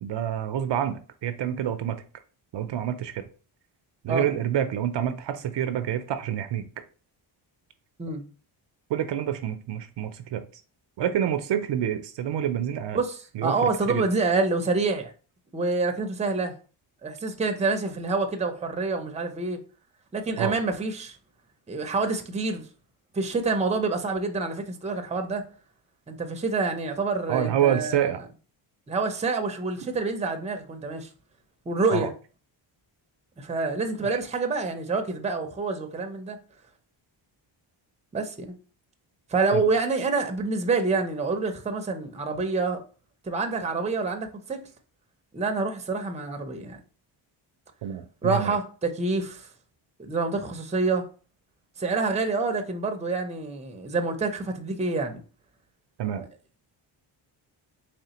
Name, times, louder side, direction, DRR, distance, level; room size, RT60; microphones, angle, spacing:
voice 1, 0.0-2.0 2.5-3.2 4.0-6.6 8.9-10.4 11.0-13.0 13.3-14.1 20.4-20.6 27.3-28.2 31.9-32.1 34.0-34.1 39.5-39.6 47.8-48.6 56.0-56.2, right 10 dB, 60° right, 0.5 m, -27 dB
voice 2, 12.9-15.1 15.5-16.5 17.0-19.6 20.1-21.2 21.7-22.7 23.1-25.4 26.1-28.1 28.9-31.1 31.7-32.1 33.4-36.4 38.1-38.5 39.3-42.8 43.2-44.6 45.3-46.8 48.2-49.5 50.0-51.0 51.8-55.2 56.2-56.3, right 3 dB, 15° right, 0.6 m, -27 dB
4.1 x 3.1 x 2.9 m
cardioid pair, 100°, 49 cm